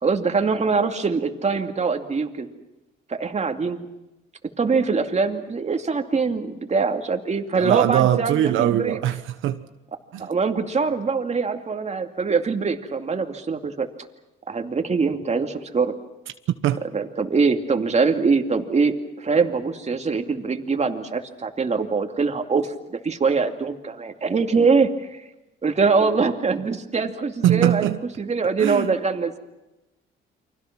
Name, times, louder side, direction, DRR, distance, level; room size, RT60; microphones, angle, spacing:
voice 1, 0.0-2.5 3.1-3.9 4.6-9.0 10.2-13.9 14.5-15.9 16.8-25.2 25.6-29.4, right 4 dB, 35° right, 2.5 m, -23 dB
voice 2, 7.6-9.6 10.1-10.2 16.6-16.8 27.4-28.0 28.6-28.9, right 12 dB, 85° right, 1.2 m, -21 dB
29.5 x 24.5 x 6.1 m
cardioid pair, 90°, 20 cm